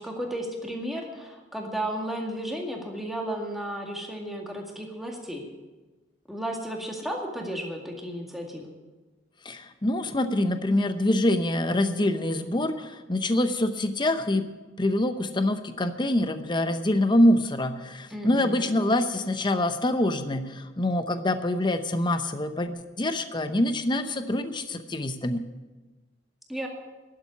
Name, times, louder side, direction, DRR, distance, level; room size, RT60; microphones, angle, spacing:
voice 1, 0.0-5.5 6.3-8.7 18.1-18.7 26.5-26.7, right 1 dB, ahead, 0 dB, 2.1 m, -33 dB
voice 2, 9.4-14.5 14.8-25.4, left 1 dB, 25° left, 9 dB, 0.8 m, -25 dB
11.5 x 7.8 x 9.9 m, 1.2 s
head